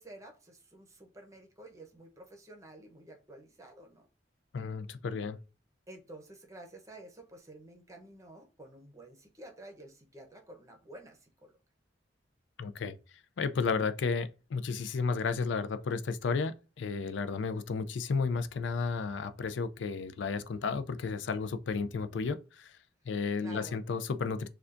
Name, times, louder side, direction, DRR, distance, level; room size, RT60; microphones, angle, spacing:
voice 1, 0.0-4.1 5.9-11.5 23.4-23.8, right 1 dB, 15° right, 0.8 m, -51 dB
voice 2, 4.5-5.4 12.6-13.0 13.4-22.8 23.1-24.5, left 4 dB, 80° left, 0.4 m, -33 dB
6.7 x 2.3 x 2.5 m
head